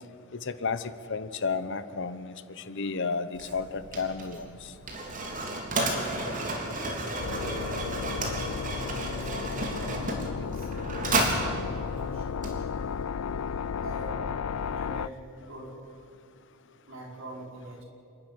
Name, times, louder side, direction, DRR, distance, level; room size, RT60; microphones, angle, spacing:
voice 1, 0.3-4.7, left 4 dB, 60° left, 13 dB, 1.0 m, -32 dB
Mechanisms, 3.3-13.0, right 2 dB, 40° right, 3.4 m, -32 dB
sound 1, 7.2-15.1, left 6 dB, 90° left, 0.4 m, -34 dB
voice 2, 8.1-8.4 9.2-12.3 13.8-14.4 14.7-15.8 16.9-17.9, right 1 dB, 65° right, -1 dB, 5.2 m, -43 dB
27.5 x 12.0 x 9.9 m, 2.5 s
head